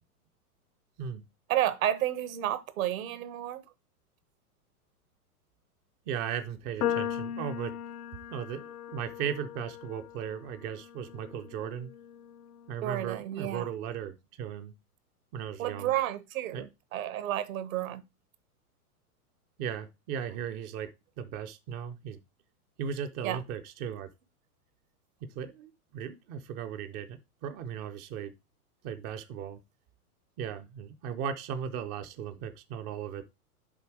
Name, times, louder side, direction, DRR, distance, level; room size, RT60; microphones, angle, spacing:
voice 1, 1.5-3.6 12.8-13.7 15.6-18.0 23.2-23.4, right 12 dB, 65° right, 1.2 m, -31 dB
voice 2, 6.1-7.7 8.3-11.9 12.7-14.7 15.3-16.0 16.5-16.7 19.6-20.9 21.2-22.2 22.8-24.1 25.4-28.3 28.8-29.6 30.4-33.3, right 8 dB, 20° right, 0.4 m, -37 dB
sound 1, 6.8-13.1, left 10 dB, 75° left, 0.8 m, -38 dB
7.0 x 4.2 x 4.6 m
hypercardioid pair, 120°, 45 cm